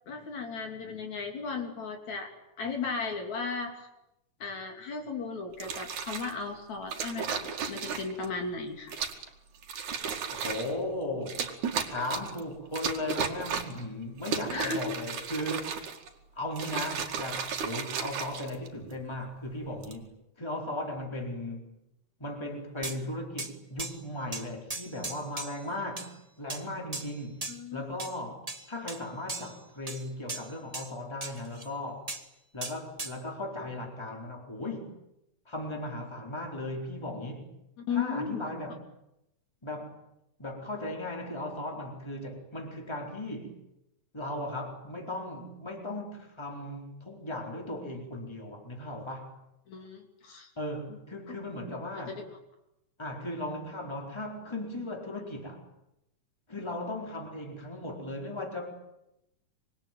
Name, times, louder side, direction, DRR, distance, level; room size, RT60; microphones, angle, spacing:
voice 1, 0.1-2.3 2.6-3.9 4.4-8.9 14.5-14.8 27.5-28.0 37.8-38.5 49.7-50.5 51.3-51.4 51.7-52.0, left 4 dB, 65° left, 3 dB, 4.4 m, -36 dB
sound 1, 5.5-6.3 6.9-8.3 8.9-9.3 9.6-10.7 11.3-12.4 12.7-13.8 14.2-16.1 16.5-18.9 19.6-20.0, right 6 dB, 70° right, 3.5 m, -34 dB
voice 2, 10.3-11.5 11.8-15.7 16.3-20.1 20.4-21.6 22.2-27.4 27.7-32.1 32.5-34.9 35.5-37.5 37.9-38.8 39.6-40.0 40.4-43.5 44.1-49.3 50.6-52.2 53.0-55.6 56.5-58.7, left 1 dB, 10° left, 2 dB, 4.0 m, -37 dB
sound 2, 22.8-23.0 23.4-23.5 23.8-24.0 24.3-25.6 26.0-26.1 26.5-26.6 26.9-27.6 28.0-28.2 28.5-29.0 29.3-29.6 29.9-30.9 31.2-31.7 32.1-32.3 32.6-33.2, right 2 dB, 30° right, 0.7 m, -38 dB
25.5 x 23.0 x 9.3 m, 0.87 s
omnidirectional pair, 3.6 m